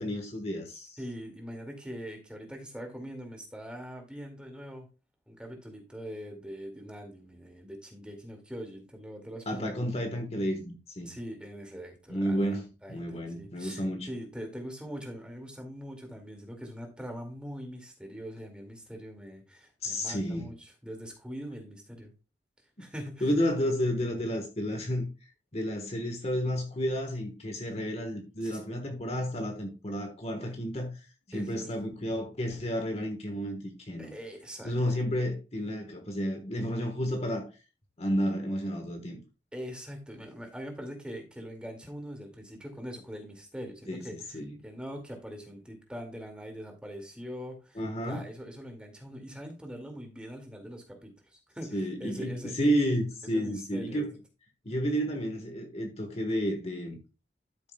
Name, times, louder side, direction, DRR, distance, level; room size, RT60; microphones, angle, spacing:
voice 1, 0.0-1.0 9.5-11.1 12.1-14.1 19.8-20.5 22.8-22.9 23.2-25.1 25.5-31.0 31.3-34.1 34.6-37.5 38.0-39.2 43.9-44.1 44.3-44.5 47.8-48.2 51.7-54.1 54.6-57.0, equal, 35° left, 1.3 m, -31 dB
voice 2, 1.0-4.9 5.3-9.8 11.1-13.8 14.1-22.1 22.8-23.3 28.4-28.6 31.3-31.7 34.0-34.8 39.5-52.5 53.3-54.0, equal, 5° right, 2.2 m, -42 dB
12.5 x 7.0 x 2.3 m
head